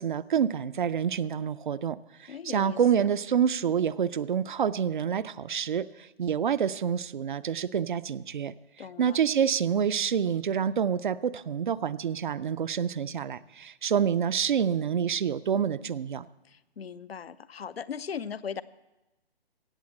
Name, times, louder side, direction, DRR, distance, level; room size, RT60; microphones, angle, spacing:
voice 1, 0.0-8.5 9.0-16.3, right 8 dB, 50° right, 15 dB, 0.5 m, -27 dB
voice 2, 2.3-3.1 8.8-9.2 16.5-18.6, left 7 dB, 70° left, 16 dB, 0.7 m, -38 dB
16.5 x 6.9 x 7.6 m, 1.0 s
figure-of-eight pair, 145°, 31 cm